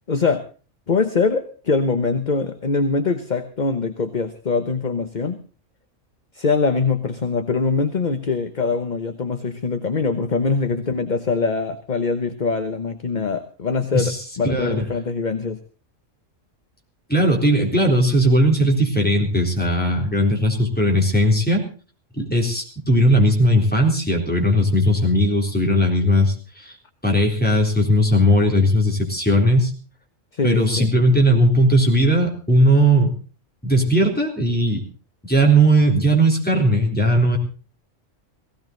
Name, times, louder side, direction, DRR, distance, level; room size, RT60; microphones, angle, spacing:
voice 1, 0.1-0.4 0.9-5.4 6.3-15.6 30.3-30.9, left 4 dB, 40° left, 8 dB, 1.1 m, -23 dB
voice 2, 14.4-14.8 17.1-21.6 22.1-26.7 27.0-29.7 30.4-33.1 33.6-34.8 35.2-37.4, equal, 5° left, 0 dB, 3.8 m, -18 dB
17.5 x 17.0 x 3.9 m, 0.37 s
omnidirectional pair, 1.3 m